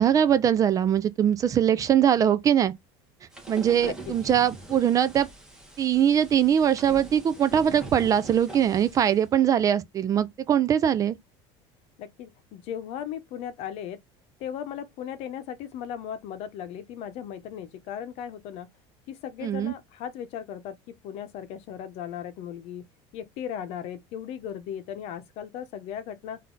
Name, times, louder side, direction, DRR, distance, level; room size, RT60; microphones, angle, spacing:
voice 1, 0.0-2.7 3.5-5.3 5.8-11.2 19.4-19.7, right 9 dB, 25° right, 0.3 m, -22 dB
sound 1, 3.3-9.2, right 3 dB, 5° right, 1.4 m, -43 dB
voice 2, 3.8-4.1 12.0-14.0 14.4-18.7 19.1-22.8 23.1-26.4, left 9 dB, 55° left, 0.8 m, -37 dB
3.9 x 2.7 x 3.7 m
cardioid pair, 150°, 13 cm